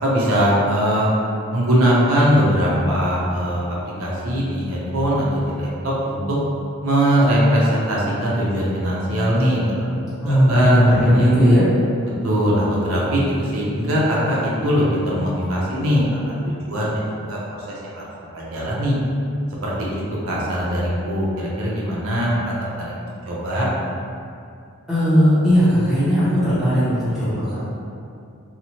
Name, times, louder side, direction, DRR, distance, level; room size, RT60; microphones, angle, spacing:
voice 1, 0.0-1.1 1.5-6.4 6.8-11.3 12.2-17.4 17.9-18.0 18.3-19.0 19.6-23.7, equal, 70° right, -5 dB, 0.6 m, -21 dB
voice 2, 10.2-11.7 24.9-27.6, equal, ahead, -14 dB, 0.6 m, -16 dB
2.8 x 2.1 x 2.8 m, 2.5 s
head